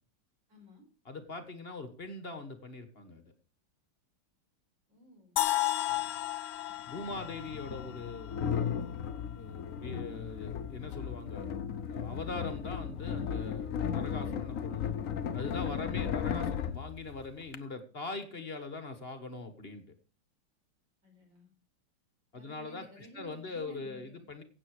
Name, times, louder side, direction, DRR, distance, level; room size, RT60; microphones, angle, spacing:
voice 1, 0.5-0.8 4.9-5.4 7.4-7.6 15.7-16.1 21.0-21.5 22.3-24.3, right 1 dB, 60° right, 2 dB, 5.5 m, -54 dB
voice 2, 1.0-3.3 6.9-8.8 9.4-11.5 11.9-14.9 15.3-19.8 22.3-24.4, left 3 dB, 30° left, 9 dB, 1.5 m, -42 dB
sound 1, 5.4-9.3, left 15 dB, 90° left, 1.6 m, -34 dB
sound 2, 5.9-6.0 7.0-17.6, left 8 dB, 55° left, 0.9 m, -36 dB
16.0 x 8.1 x 4.8 m, 0.38 s
omnidirectional pair, 2.3 m